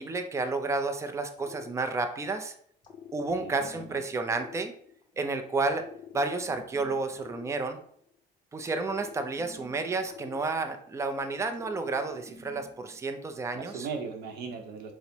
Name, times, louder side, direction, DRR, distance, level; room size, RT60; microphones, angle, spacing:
voice 1, 0.0-2.5 3.1-4.7 5.2-5.8 6.1-7.8 8.5-13.9, right 3 dB, 15° right, 7 dB, 0.4 m, -31 dB
sound 1, 1.4-2.4 2.8-5.3 5.7-8.2 8.6-11.1 11.5-13.0, left 6 dB, 25° left, 0.8 m, -49 dB
voice 2, 3.4-4.0 13.5-14.9, right 5 dB, 75° right, 4 dB, 0.8 m, -38 dB
4.4 x 2.0 x 3.9 m, 0.62 s
cardioid pair, 110°, 17 cm